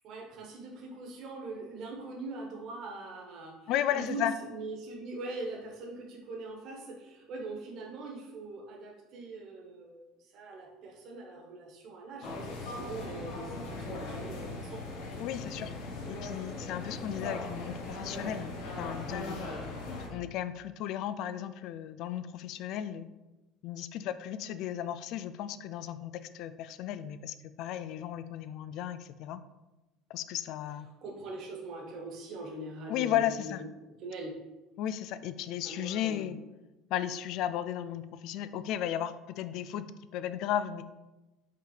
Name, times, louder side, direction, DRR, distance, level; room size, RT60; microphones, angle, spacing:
voice 1, 0.0-14.8 31.0-33.5 34.0-34.4 35.6-36.4, right 2 dB, 50° right, 0 dB, 1.4 m, -42 dB
voice 2, 3.7-4.3 15.2-15.7 16.1-19.4 20.1-23.1 23.6-29.4 30.1-30.9 32.9-33.6 34.8-36.4 36.9-39.9 40.1-40.8, left 11 dB, 55° left, 13 dB, 0.4 m, -34 dB
sound 1, 12.2-20.1, left 2 dB, 75° left, 1.5 m, -39 dB
5.4 x 4.0 x 5.0 m, 1.0 s
cardioid pair, 155°, 0 cm